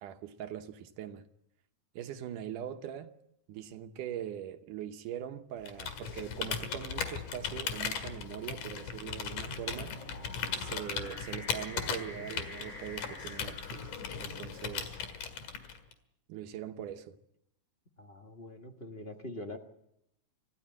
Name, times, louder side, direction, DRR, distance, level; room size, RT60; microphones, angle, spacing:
voice 1, 0.0-1.2 2.0-3.1 3.5-9.9 10.5-13.9 14.2-15.0 16.3-17.2, right 10 dB, 80° right, 2.6 m, -42 dB
sound 1, 5.2-5.6 6.4-14.7, left 1 dB, 20° left, 3.8 m, -51 dB
Computer keyboard, 5.6-15.9, left 7 dB, 70° left, 3.2 m, -38 dB
voice 2, 18.0-19.6, left 1 dB, 40° left, 0.8 m, -44 dB
25.0 x 15.5 x 8.9 m
omnidirectional pair, 3.6 m